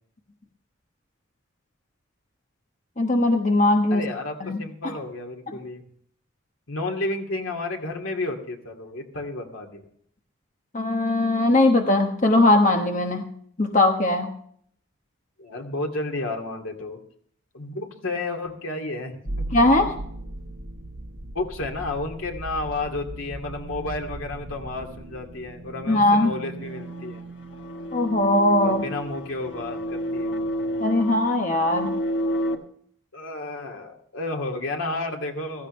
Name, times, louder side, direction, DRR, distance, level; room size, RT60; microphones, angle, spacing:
voice 1, 3.0-4.0 4.4-4.9 10.7-13.3 13.6-14.3 19.5-19.9 25.9-26.3 27.9-28.9 30.8-32.0, left 2 dB, 35° left, 4 dB, 1.1 m, -20 dB
voice 2, 3.9-5.8 6.7-9.8 15.4-17.0 17.5-19.5 21.2-27.2 28.6-30.4 33.1-35.7, left 2 dB, 85° left, 3 dB, 2.4 m, -31 dB
sound 1, 19.2-30.8, right 2 dB, 75° right, 1.3 m, -38 dB
sound 2, 26.6-32.5, equal, 60° left, 1.3 m, -30 dB
15.5 x 15.0 x 3.3 m, 0.63 s
head